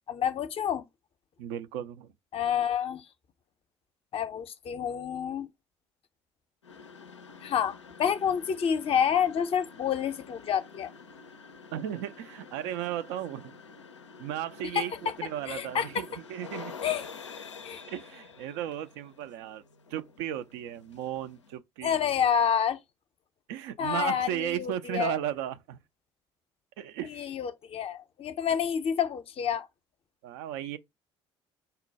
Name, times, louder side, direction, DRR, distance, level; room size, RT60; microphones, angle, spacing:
voice 1, 0.1-0.8 2.3-3.1 4.1-5.5 7.4-10.9 14.7-15.1 15.5-16.1 16.8-17.1 17.6-17.8 21.8-22.8 23.8-25.2 27.0-29.7, left 8 dB, 40° left, 0.6 m, -28 dB
voice 2, 1.4-2.1 11.7-13.6 14.2-16.7 17.7-19.6 19.9-22.0 23.5-25.8 26.8-27.3 28.5-28.6 30.2-30.8, right 11 dB, 60° right, 0.4 m, -35 dB
sound 1, 6.6-21.6, left 5 dB, 85° left, 0.4 m, -48 dB
5.4 x 2.2 x 3.9 m
figure-of-eight pair, 50°, 15 cm